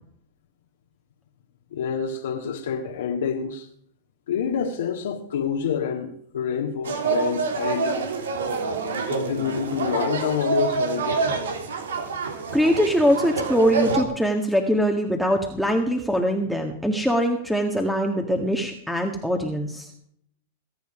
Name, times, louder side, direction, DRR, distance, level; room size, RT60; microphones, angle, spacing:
voice 1, 1.7-3.7 4.3-8.1 9.1-11.2, left 7 dB, 80° left, 1.9 m, -27 dB
sound 1, 6.8-14.0, right 4 dB, 85° right, 2.9 m, -27 dB
voice 2, 12.5-19.9, equal, ahead, 1.8 m, -22 dB
20.5 x 9.4 x 5.0 m
hypercardioid pair, 115°, 0 cm